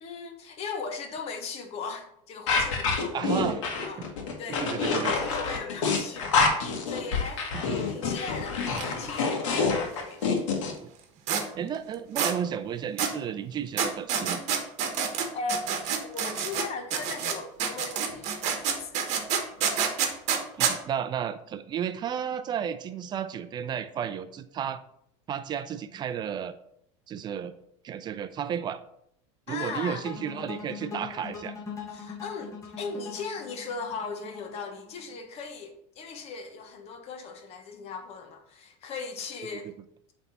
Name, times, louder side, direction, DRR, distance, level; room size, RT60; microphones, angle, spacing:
voice 1, 0.0-3.3 3.8-4.1 4.4-4.7 5.0-7.4 7.7-10.3 15.3-19.1 29.5-30.1 31.9-39.7, left 4 dB, 40° left, 5 dB, 1.1 m, -38 dB
sound 1, 2.5-10.7, left 4 dB, 85° left, 1.5 m, -27 dB
voice 2, 3.1-4.1 4.5-5.1 7.5-7.6 10.8-10.9 11.6-14.4 20.6-24.8 25.3-26.5 27.1-27.5 27.8-28.8 29.5-31.5, right 8 dB, 30° right, 11 dB, 0.5 m, -33 dB
sound 2, 8.6-8.8 9.1-9.2 11.3-11.4 12.2-12.3 13.0-13.1 13.8-16.7 16.9-20.7, right 7 dB, 50° right, 1.2 m, -27 dB
sound 3, 30.0-35.1, left 6 dB, 20° left, 1.6 m, -41 dB
8.3 x 3.5 x 4.2 m, 0.73 s
supercardioid pair, 130°, 15 cm